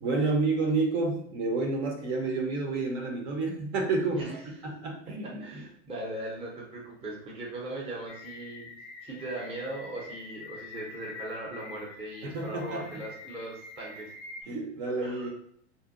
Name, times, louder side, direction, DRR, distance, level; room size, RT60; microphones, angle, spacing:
voice 1, 0.0-4.3 4.6-5.4 12.2-13.0 14.5-15.3, right 3 dB, 65° right, 1 dB, 0.8 m, -29 dB
voice 2, 4.1-4.5 5.2-8.7 9.0-14.1 15.0-15.3, right 1 dB, 15° right, -4 dB, 0.6 m, -39 dB
sound 1, 8.1-14.4, left 3 dB, 30° left, 0.4 m, -46 dB
2.7 x 2.2 x 2.5 m, 0.65 s
supercardioid pair, 130°, 36 cm